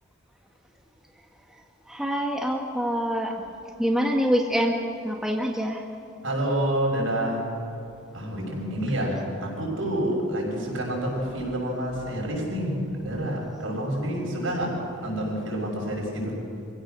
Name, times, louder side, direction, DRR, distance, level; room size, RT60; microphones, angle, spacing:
voice 1, 1.9-3.3 3.8-5.8, equal, ahead, 1 dB, 1.2 m, -25 dB
voice 2, 6.2-7.4 8.1-16.3, right 1 dB, 75° right, -2 dB, 6.6 m, -28 dB
26.0 x 16.0 x 6.6 m, 2.6 s
head